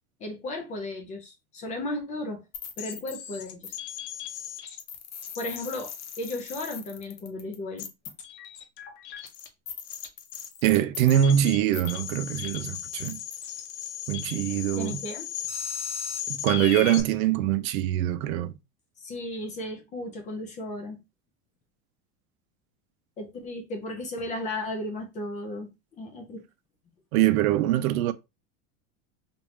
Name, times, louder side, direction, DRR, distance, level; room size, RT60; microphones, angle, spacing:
voice 1, 0.2-2.4 2.8-3.7 5.4-7.9 14.8-15.2 19.0-21.0 23.2-25.7 26.0-26.4, left 1 dB, 20° left, 0.4 m, -35 dB
sound 1, 2.5-17.0, left 9 dB, 55° left, 0.8 m, -37 dB
voice 2, 10.6-13.2 14.1-15.0 16.3-18.5 27.1-28.1, right 12 dB, 85° right, 0.6 m, -23 dB
3.1 x 2.6 x 3.1 m
supercardioid pair, 160°, 41 cm